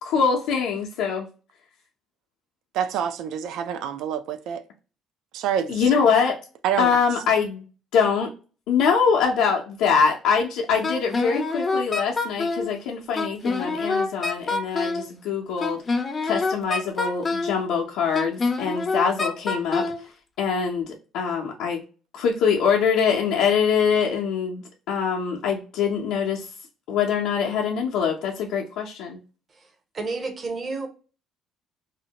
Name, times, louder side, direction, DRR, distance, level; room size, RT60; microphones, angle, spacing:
voice 1, 0.0-1.3 5.7-6.4 6.8-7.6 7.9-8.3 8.7-15.8 16.2-19.8 20.4-21.8 22.1-26.5 26.9-29.2, left 6 dB, 90° left, 0.5 m, -23 dB
voice 2, 2.7-4.6 5.3-5.9 6.6-7.0, right 9 dB, 75° right, 0.3 m, -27 dB
Wind instrument woodwind instrument, 10.8-12.7 13.2-15.1 15.6-17.6 18.1-20.0, left 3 dB, 30° left, 0.4 m, -26 dB
voice 3, 29.9-30.9, right 3 dB, 35° right, 0.6 m, -30 dB
2.5 x 2.1 x 2.8 m
cardioid pair, 125°, 0 cm